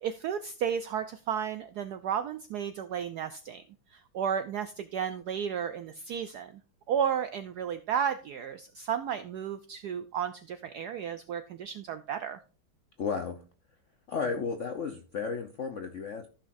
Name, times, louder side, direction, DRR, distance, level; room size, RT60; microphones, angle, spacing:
voice 1, 0.0-3.6 3.9-6.6 6.9-12.4, right 8 dB, 80° right, 11 dB, 0.9 m, -33 dB
voice 2, 13.0-13.4 14.1-16.3, left 5 dB, 70° left, 6 dB, 0.7 m, -33 dB
14.0 x 5.8 x 2.5 m, 0.37 s
omnidirectional pair, 2.2 m